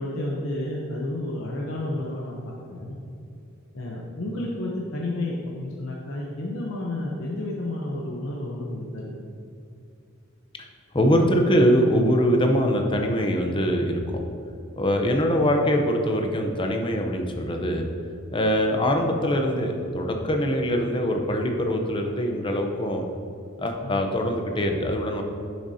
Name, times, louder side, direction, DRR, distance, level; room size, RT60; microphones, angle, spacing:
voice 1, 0.0-3.0 3.7-9.2 23.8-24.0, left 1 dB, 65° left, -3 dB, 0.8 m, -31 dB
voice 2, 10.9-14.2 14.8-17.9 18.3-23.0 23.6-25.2, equal, 25° left, 3 dB, 0.7 m, -23 dB
10.5 x 6.2 x 2.8 m, 2.5 s
head